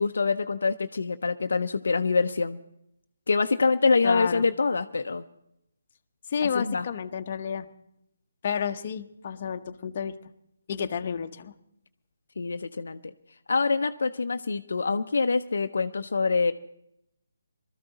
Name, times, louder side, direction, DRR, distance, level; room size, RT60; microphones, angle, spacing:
voice 1, 0.0-2.6 3.3-5.2 6.5-6.9 10.8-11.1 12.4-13.1 13.5-16.5, left 4 dB, 70° left, 8 dB, 0.6 m, -25 dB
voice 2, 4.0-4.5 6.3-7.7 8.4-10.2 10.7-11.5, left 7 dB, 40° left, 7 dB, 0.8 m, -31 dB
20.0 x 13.5 x 4.0 m, 0.79 s
hypercardioid pair, 160°, 0 cm